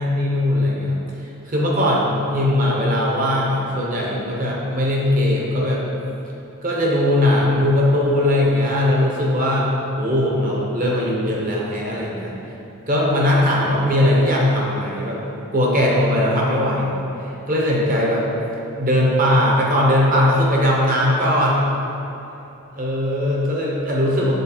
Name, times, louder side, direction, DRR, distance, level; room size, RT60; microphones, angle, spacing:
voice 1, 0.0-5.8 6.6-9.7 10.0-12.4 12.9-15.2 15.5-18.3 18.8-21.6 22.7-24.3, left 1 dB, 40° right, -3 dB, 1.0 m, -19 dB
6.7 x 4.2 x 4.3 m, 2.9 s
head